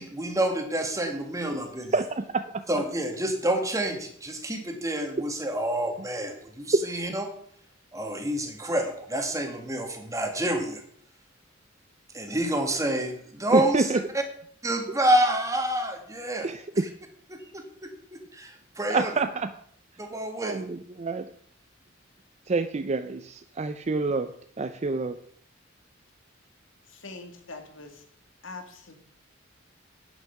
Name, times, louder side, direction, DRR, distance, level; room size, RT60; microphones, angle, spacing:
voice 1, 0.0-1.9 2.7-7.3 7.9-10.8 12.1-13.9 14.6-16.5 17.3-19.1 20.0-20.6, right 1 dB, 15° right, 5 dB, 1.9 m, -28 dB
voice 2, 1.9-2.6 6.7-6.8 13.5-14.0 16.4-16.8 18.9-19.5 20.4-21.3 22.5-25.2, right 3 dB, 35° right, 9 dB, 0.5 m, -27 dB
voice 3, 27.0-27.9 28.4-28.9, left 3 dB, 75° left, 5 dB, 2.2 m, -42 dB
10.0 x 8.9 x 5.8 m, 0.63 s
head